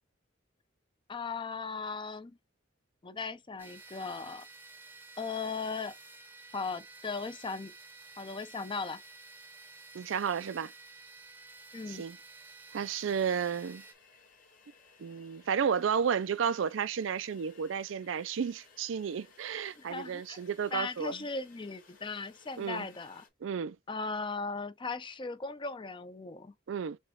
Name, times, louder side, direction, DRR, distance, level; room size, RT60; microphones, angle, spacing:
voice 1, 1.1-2.4 3.0-4.5 5.2-5.9 6.5-7.7 8.2-9.0 11.7-12.0 19.8-20.4 20.7-23.3 23.9-26.5, left 4 dB, 25° left, 0.5 m, -37 dB
sound 1, 3.6-13.9, right 3 dB, 10° right, 0.8 m, -52 dB
voice 2, 9.9-10.7 11.9-12.2 12.7-13.8 15.0-21.2 22.6-22.9 23.4-23.8 26.7-27.0, right 7 dB, 70° right, 0.4 m, -32 dB
sound 2, 12.5-23.3, left 5 dB, 45° left, 1.9 m, -61 dB
6.4 x 2.4 x 3.5 m
head